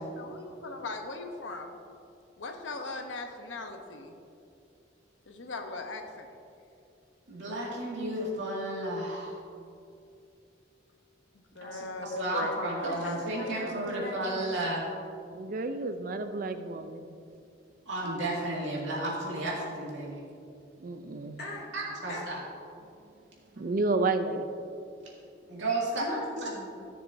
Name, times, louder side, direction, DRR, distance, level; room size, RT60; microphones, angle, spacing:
voice 1, 0.0-1.8 2.4-4.2 5.3-6.3 11.3-13.8, left 2 dB, 90° left, 4 dB, 0.9 m, -39 dB
voice 2, 7.3-9.4 11.6-14.8 17.9-20.2 21.7-22.4 23.5-23.6 25.5-26.1 26.4-26.5, right 1 dB, 80° right, -4 dB, 2.2 m, -33 dB
voice 3, 12.8-14.5 21.4-21.7 22.1-22.3 25.9-26.9, left 1 dB, 55° left, -5 dB, 2.1 m, -40 dB
voice 4, 15.3-17.0 20.8-21.4 23.6-24.4, right 3 dB, 45° right, 8 dB, 0.4 m, -31 dB
13.5 x 6.8 x 2.7 m, 2.5 s
head